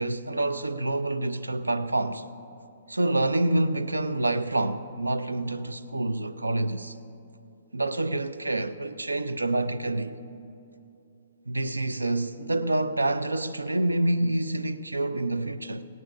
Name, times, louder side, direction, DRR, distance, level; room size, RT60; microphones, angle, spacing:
voice 1, 0.0-2.3 2.9-7.0 7.7-10.2 11.5-15.8, right 2 dB, 90° right, 0.5 m, -27 dB
18.0 x 17.0 x 2.6 m
figure-of-eight pair, 125°, 0 cm